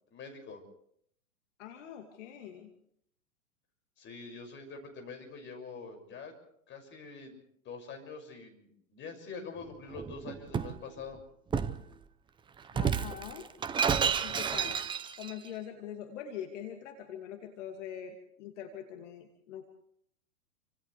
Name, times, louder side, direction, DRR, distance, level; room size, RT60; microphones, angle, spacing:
voice 1, 0.1-0.6 4.0-6.3 6.7-7.4 7.6-11.2, left 4 dB, 25° left, 4 dB, 6.4 m, -45 dB
voice 2, 1.6-2.7 12.7-13.5 14.2-14.8 15.2-19.7, left 9 dB, 55° left, 4 dB, 2.5 m, -43 dB
Shatter, 9.9-10.8 11.5-11.8 12.7-15.3, right 7 dB, 10° right, 0.7 m, -31 dB
30.0 x 26.0 x 3.4 m, 0.68 s
hypercardioid pair, 115°, 43 cm